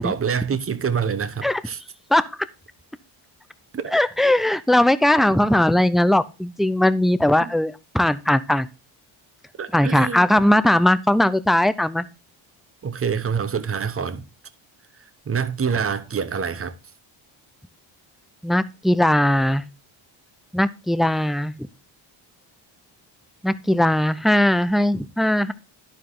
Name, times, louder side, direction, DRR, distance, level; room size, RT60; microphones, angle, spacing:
voice 1, 0.0-1.8 3.7-3.9 7.4-7.5 9.6-10.3 12.8-14.3 15.3-16.7, right 6 dB, 30° right, 0.9 m, -26 dB
voice 2, 3.9-8.7 9.7-12.1 18.4-19.6 20.5-21.5 23.4-25.5, left 1 dB, ahead, 0.4 m, -19 dB
11.5 x 4.7 x 3.7 m
cardioid pair, 90°, 48 cm